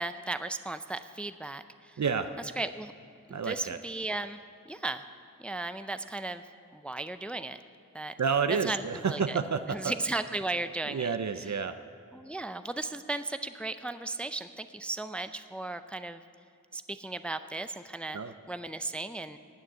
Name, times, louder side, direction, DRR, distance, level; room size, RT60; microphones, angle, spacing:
voice 1, 0.0-2.0 2.6-2.9 3.3-4.4 4.7-5.0 5.4-6.4 6.7-7.6 7.9-8.1 8.6-9.4 9.7-11.1 12.1-16.2 16.7-18.2 18.5-19.4, right 2 dB, 5° left, 10 dB, 0.4 m, -35 dB
voice 2, 2.0-2.3 3.3-3.8 8.2-9.9 10.9-11.8 18.1-18.3, right 5 dB, 55° right, 9 dB, 0.6 m, -30 dB
16.0 x 6.4 x 9.8 m, 2.3 s
wide cardioid pair, 70°, 33 cm